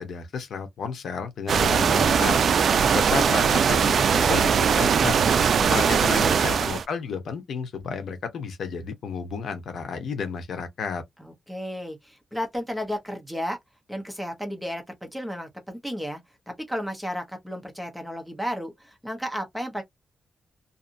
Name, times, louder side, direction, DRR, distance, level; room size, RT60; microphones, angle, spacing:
voice 1, 0.0-2.4 2.9-11.0, left 5 dB, 70° left, 0.8 m, -32 dB
sound 1, 1.5-6.8, right 6 dB, 60° right, 0.3 m, -20 dB
voice 2, 5.5-6.4 11.2-13.6 13.9-16.2 16.5-19.8, equal, ahead, 0.9 m, -33 dB
2.7 x 2.5 x 2.5 m
wide cardioid pair, 130°, 0 cm